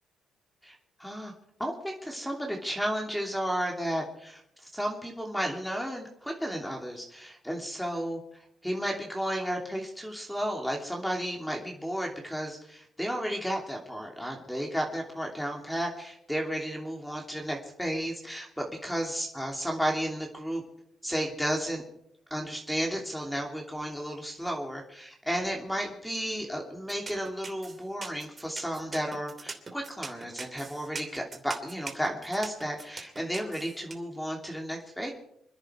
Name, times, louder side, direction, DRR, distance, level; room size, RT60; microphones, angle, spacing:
voice 1, 0.6-1.3 1.6-8.2 8.6-20.6 21.0-21.8 22.3-35.1, equal, 5° left, 1 dB, 2.9 m, -33 dB
sound 1, 26.9-33.9, right 4 dB, 30° right, 2.8 m, -41 dB
27.5 x 10.5 x 4.6 m, 0.75 s
cardioid pair, 90°, 0 cm